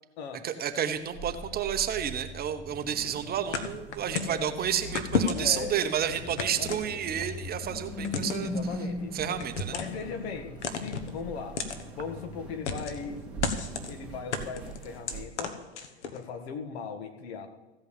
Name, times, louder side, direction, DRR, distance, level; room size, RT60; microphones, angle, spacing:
voice 1, 0.4-8.5 9.1-9.8, right 9 dB, 30° right, 8 dB, 1.0 m, -30 dB
sound 1, 0.9-14.4, left 1 dB, 25° left, 2.0 m, -41 dB
sound 2, 2.7-15.3, right 5 dB, 5° right, 2.6 m, -46 dB
sound 3, 3.5-4.4 5.0-5.7 6.4-7.3 8.0-8.5 9.4-10.0 10.6-11.1 11.6-11.8 12.7-13.1 13.4-13.9 14.3-16.2, left 5 dB, 85° left, 1.4 m, -32 dB
voice 2, 5.4-7.0 8.4-9.2 9.7-10.5 10.8-11.6 12.0-13.2 13.9-15.6 16.1-17.5, left 6 dB, 65° left, 7 dB, 1.8 m, -38 dB
15.0 x 5.6 x 8.6 m, 1.1 s
hypercardioid pair, 110°, 34 cm